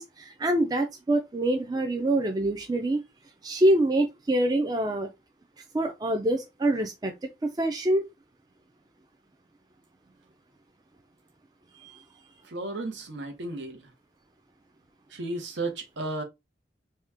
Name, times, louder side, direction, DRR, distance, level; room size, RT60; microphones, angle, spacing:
voice 1, 0.0-3.0 3.4-5.1 5.7-7.3 7.6-8.0 11.8-11.9, right 1 dB, 20° right, 0.3 m, -25 dB
voice 2, 12.4-13.9 15.1-16.2, right 2 dB, 75° right, 0.8 m, -34 dB
2.8 x 2.1 x 3.4 m
head